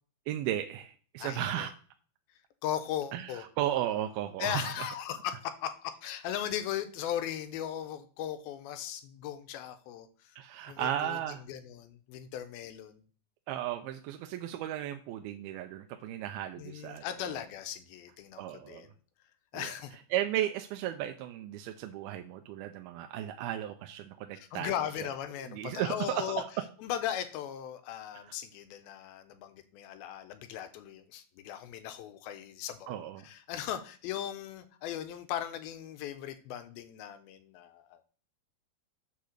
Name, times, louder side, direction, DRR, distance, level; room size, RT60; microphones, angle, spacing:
voice 1, 0.3-1.7 3.1-4.9 10.4-11.4 13.5-17.4 18.4-18.9 19.5-19.7 20.1-24.7 25.0-25.1 25.5-26.5 28.3-28.4 32.9-33.3, right 11 dB, 90° right, 6 dB, 2.5 m, -35 dB
voice 2, 1.2-1.7 2.6-3.5 4.4-10.4 10.7-11.2 11.5-13.0 16.6-18.9 19.5-20.0 24.3-26.4 26.8-38.0, left 10 dB, 85° left, 10 dB, 2.6 m, -38 dB
8.4 x 3.7 x 6.4 m, 0.42 s
omnidirectional pair, 4.3 m